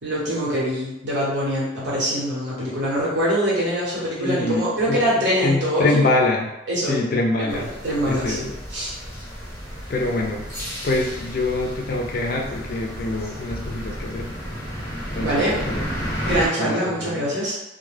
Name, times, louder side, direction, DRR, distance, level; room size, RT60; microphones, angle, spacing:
voice 1, 0.0-6.0 6.7-7.0 7.4-9.0 15.2-15.6 16.2-17.5, equal, 70° right, -7 dB, 1.1 m, -24 dB
voice 2, 4.2-6.5 6.9-7.7 8.1-8.4 9.9-10.5 10.8-14.3 15.1-15.9 16.6-17.3, left 2 dB, 50° left, 1 dB, 0.4 m, -25 dB
sound 1, 7.5-16.5, equal, 15° left, 0.8 m, -32 dB
2.2 x 2.1 x 3.2 m, 0.94 s
head